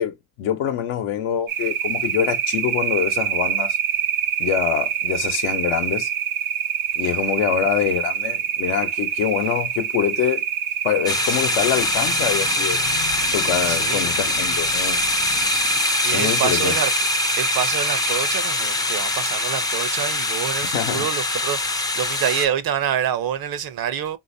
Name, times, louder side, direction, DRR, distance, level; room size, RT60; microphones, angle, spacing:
voice 1, 0.0-3.8 4.4-6.1 7.0-10.5 10.8-12.8 13.3-15.0 16.1-16.7 20.7-21.1, left 9 dB, 85° left, 0.9 m, -25 dB
sound 1, 1.5-20.7, right 9 dB, 80° right, 1.1 m, -26 dB
sound 2, 11.1-22.5, left 3 dB, 10° left, 0.3 m, -23 dB
sound 3, 11.5-16.4, left 9 dB, 55° left, 0.6 m, -38 dB
voice 2, 13.7-14.1 16.0-16.9 17.4-24.2, right 9 dB, 50° right, 0.6 m, -27 dB
3.4 x 2.6 x 2.6 m
supercardioid pair, 80°, 47 cm